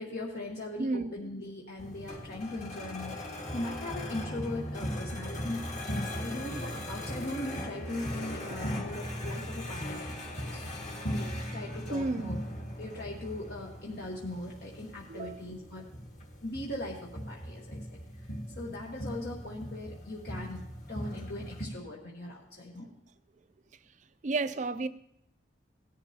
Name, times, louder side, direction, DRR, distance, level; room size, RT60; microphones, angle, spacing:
voice 1, 0.0-3.2 3.5-12.4 12.8-15.9 16.4-22.9, left 1 dB, 60° left, 1.3 m, -40 dB
voice 2, 0.8-1.1 11.9-12.3 15.1-15.5 24.2-24.9, right 3 dB, 40° right, 0.5 m, -31 dB
sound 1, 1.8-21.6, equal, 40° left, 1.8 m, -39 dB
17.0 x 10.5 x 2.8 m
head